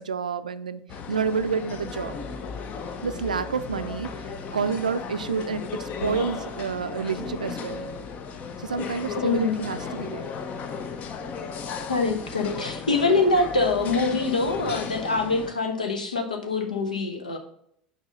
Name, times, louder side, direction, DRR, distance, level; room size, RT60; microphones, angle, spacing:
voice 1, 0.0-2.1 3.0-7.9 8.6-10.3, right 5 dB, 80° right, 12 dB, 0.4 m, -29 dB
sound 1, 0.9-15.5, left 5 dB, 40° left, 0.7 m, -35 dB
voice 2, 9.1-9.6 11.9-17.4, left 3 dB, 80° left, 5 dB, 1.0 m, -24 dB
6.3 x 5.2 x 3.7 m, 0.69 s
figure-of-eight pair, 75°, 4 cm